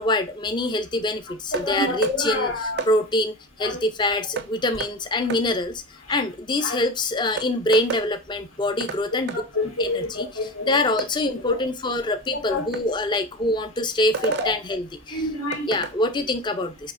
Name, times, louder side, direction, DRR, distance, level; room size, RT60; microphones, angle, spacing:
voice 1, 0.0-5.8 6.1-9.4 9.8-10.3 10.7-15.2 15.7-16.9, left 1 dB, 20° left, 0.4 m, -25 dB
voice 2, 1.5-2.9 3.6-3.8 4.1-4.2 6.6-6.8 9.1-10.7 11.5-11.6 12.3-13.0 14.2-14.5 15.1-15.8, left 2 dB, 90° left, 2.2 m, -28 dB
sound 1, 1.5-1.7 2.0-2.2 2.8-2.9 4.4-4.5 4.8-4.9 5.3-5.4 6.8-6.9 7.4-8.1 8.8-9.0 9.3-9.4 11.0-11.1 12.7-12.9 14.1-14.5 15.5-15.9, right 5 dB, 55° right, 0.4 m, -30 dB
6.9 x 2.8 x 2.5 m
head